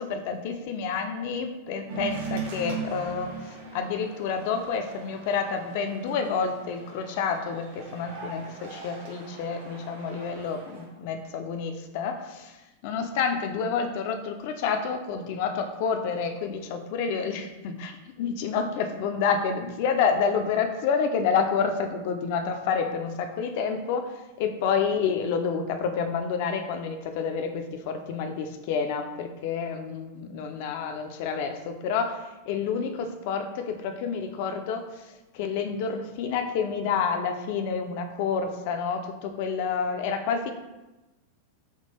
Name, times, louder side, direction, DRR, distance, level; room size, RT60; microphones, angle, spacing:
voice 1, 0.0-12.6 12.8-40.5, left 6 dB, 50° left, 6 dB, 0.3 m, -29 dB
sound 1, 1.9-10.8, right 4 dB, 60° right, 0.8 m, -39 dB
3.6 x 2.3 x 2.7 m, 1.0 s
figure-of-eight pair, 90°, 0 cm